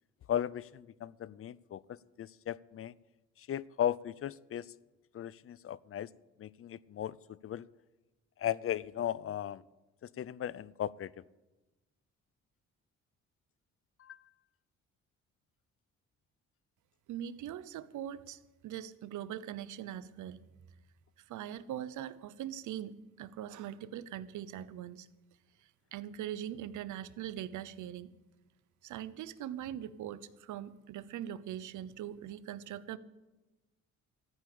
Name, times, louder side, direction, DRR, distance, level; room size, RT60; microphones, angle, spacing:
voice 1, 0.3-2.9 3.4-4.7 5.1-6.1 6.4-7.7 8.4-9.6 10.0-11.2 14.0-14.2, left 10 dB, 45° left, 21 dB, 0.5 m, -36 dB
voice 2, 17.1-20.4 21.3-25.1 25.9-28.1 28.8-33.0, right 11 dB, 80° right, 17 dB, 0.8 m, -41 dB
14.0 x 9.9 x 8.7 m, 1.1 s
cardioid pair, 90°, 30 cm